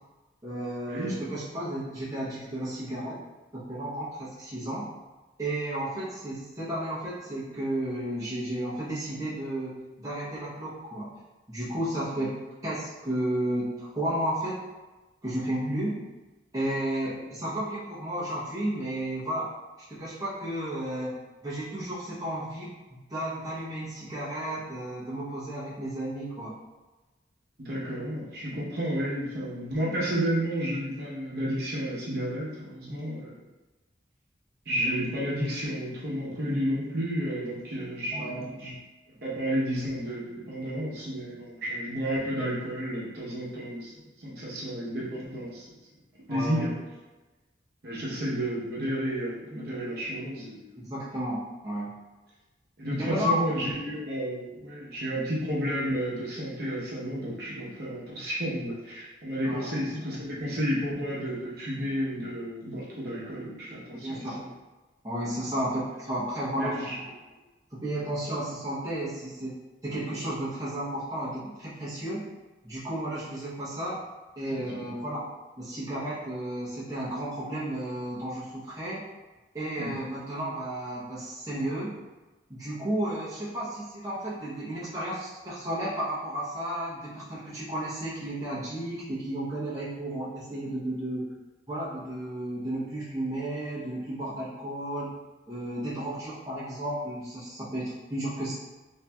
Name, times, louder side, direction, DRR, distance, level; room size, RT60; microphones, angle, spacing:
voice 1, 0.4-3.2 3.5-4.9 5.4-11.1 11.5-14.6 15.2-16.1 16.5-19.5 19.9-21.2 21.4-26.6 38.1-38.5 46.3-46.8 50.8-51.9 53.0-53.4 59.4-59.7 63.9-64.4 65.0-66.9 67.7-69.5 69.8-72.2 72.6-74.0 74.4-75.3 75.6-79.0 79.5-81.9 82.5-91.3 91.7-95.1 95.5-98.5, right 1 dB, 20° right, -9 dB, 0.7 m, -33 dB
voice 2, 27.6-33.4 34.7-38.7 39.2-43.9 44.2-45.7 46.3-46.7 47.8-50.7 52.8-64.5 66.5-67.0 74.5-74.9 79.8-80.0, equal, 55° right, -7 dB, 0.8 m, -31 dB
3.0 x 2.6 x 2.2 m, 1.2 s
head